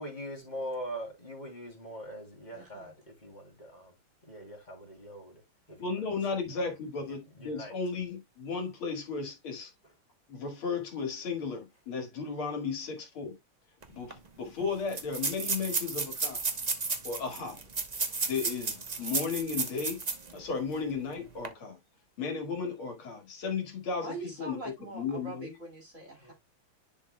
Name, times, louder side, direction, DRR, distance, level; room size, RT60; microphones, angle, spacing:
voice 1, 0.0-3.9 4.3-5.4 5.7-6.0 6.3-7.7 26.2-26.3, equal, 20° left, 3.0 m, -42 dB
voice 2, 2.5-2.9 24.0-26.3, right 2 dB, 35° right, 2.6 m, -43 dB
voice 3, 5.8-9.7 10.3-13.4 13.9-16.4 17.0-17.6 18.3-20.0 20.3-21.8 22.2-24.6 24.9-25.5, left 5 dB, 70° left, 2.8 m, -35 dB
sound 1, 13.8-13.9 14.1-14.2 14.9-20.3 20.7-20.8 21.3-21.5, right 4 dB, 55° right, 0.4 m, -33 dB
10.5 x 5.0 x 2.2 m
omnidirectional pair, 2.4 m